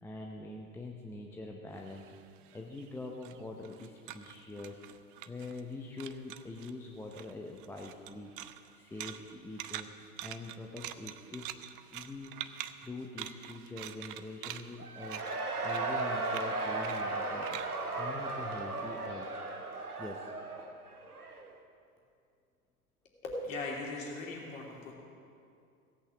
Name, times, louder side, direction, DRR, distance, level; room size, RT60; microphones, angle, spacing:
voice 1, 0.0-2.1 2.5-4.8 5.3-8.3 8.7-9.9 10.2-11.5 11.9-12.4 12.8-19.3 20.0-20.3, left 2 dB, 5° left, 0 dB, 0.7 m, -44 dB
sound 1, 1.8-5.7 6.0-6.7 7.1-18.9, right 12 dB, 35° right, 0.5 m, -46 dB
Cheering / Crowd, 14.8-21.5, right 3 dB, 80° right, 1.3 m, -36 dB
voice 2, 23.2-24.9, left 2 dB, 60° left, -2 dB, 3.1 m, -39 dB
17.0 x 8.5 x 7.2 m, 2.4 s
figure-of-eight pair, 90°, 45 cm